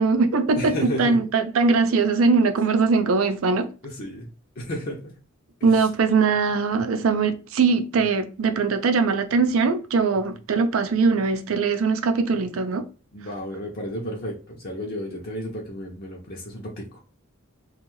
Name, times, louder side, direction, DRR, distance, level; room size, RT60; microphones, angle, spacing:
voice 1, 0.0-3.7 5.6-12.9, right 4 dB, 70° right, 0.4 m, -21 dB
voice 2, 0.5-1.2 3.8-4.3 4.6-5.2 5.6-5.9 13.1-17.0, equal, 45° left, 0.6 m, -33 dB
2.6 x 2.3 x 3.1 m
head